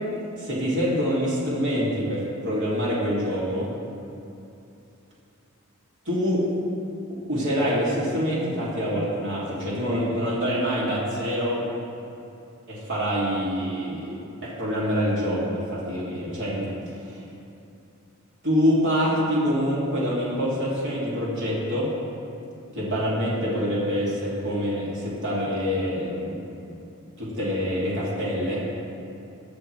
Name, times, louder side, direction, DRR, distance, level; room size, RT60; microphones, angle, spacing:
voice 1, 0.3-3.7 6.1-6.4 7.1-11.6 12.7-14.1 14.4-16.7 17.1-17.2 18.4-21.9 22.7-26.5 27.2-28.6, equal, 55° right, -7 dB, 2.6 m, -25 dB
19.5 x 6.8 x 3.3 m, 2.8 s
head